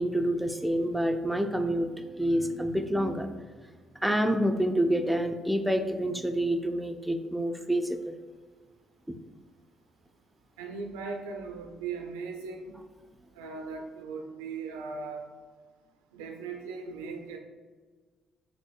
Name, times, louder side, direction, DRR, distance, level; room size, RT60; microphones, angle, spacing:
voice 1, 0.0-3.4 4.0-8.2 9.1-9.2, right 1 dB, 5° right, 5 dB, 0.4 m, -28 dB
voice 2, 10.6-12.8 13.3-15.3 16.1-17.4, right 4 dB, 75° right, 3 dB, 0.4 m, -38 dB
5.8 x 2.5 x 2.3 m, 1.4 s
figure-of-eight pair, 45°, 0 cm